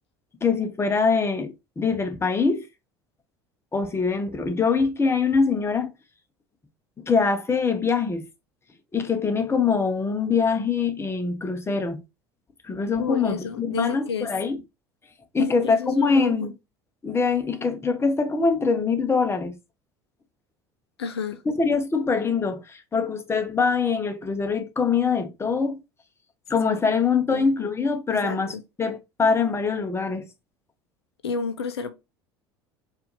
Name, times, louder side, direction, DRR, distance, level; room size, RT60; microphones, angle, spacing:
voice 1, 0.4-2.7 3.7-5.9 7.1-8.3 8.9-12.0 12.6-14.6 15.3-16.5 17.0-19.5 21.6-25.8 26.5-30.3, left 5 dB, 20° left, 0.9 m, -23 dB
voice 2, 13.0-14.3 15.4-16.5 21.0-21.4 27.3-27.5 28.2-28.6 31.2-31.9, left 6 dB, 85° left, 0.5 m, -30 dB
4.7 x 2.6 x 3.1 m
hypercardioid pair, 70°, 13 cm